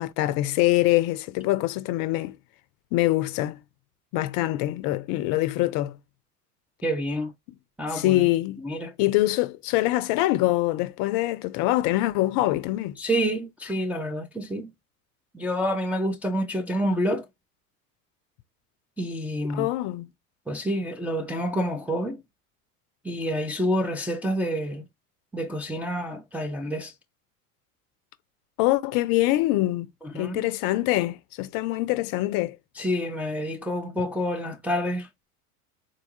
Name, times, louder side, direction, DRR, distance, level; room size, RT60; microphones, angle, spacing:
voice 1, 0.0-2.4 2.9-3.6 4.1-6.0 7.9-8.6 9.0-13.0 19.5-20.1 28.6-29.9 30.1-32.6, left 17 dB, 45° left, 0.5 m, -24 dB
voice 2, 6.8-7.3 7.8-8.2 8.6-9.0 13.0-14.7 15.3-17.3 19.0-19.7 20.5-22.2 23.0-24.8 25.3-26.9 30.0-30.5 32.8-35.1, equal, 5° right, 0.4 m, -28 dB
4.0 x 2.2 x 2.7 m
hypercardioid pair, 80°, 46 cm